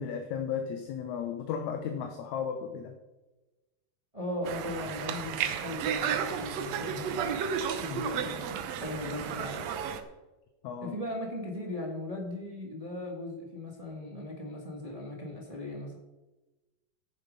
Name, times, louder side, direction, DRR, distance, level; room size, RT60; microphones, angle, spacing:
voice 1, 0.0-3.0 7.9-8.3 10.6-11.0, left 7 dB, 70° left, 6 dB, 2.0 m, -35 dB
voice 2, 4.1-7.5 7.8-9.6 10.8-16.0, left 1 dB, 20° right, 0 dB, 1.0 m, -38 dB
Conversation, 4.5-10.0, right 7 dB, 70° right, 1.7 m, -33 dB
16.0 x 6.9 x 5.4 m, 1.1 s
omnidirectional pair, 3.8 m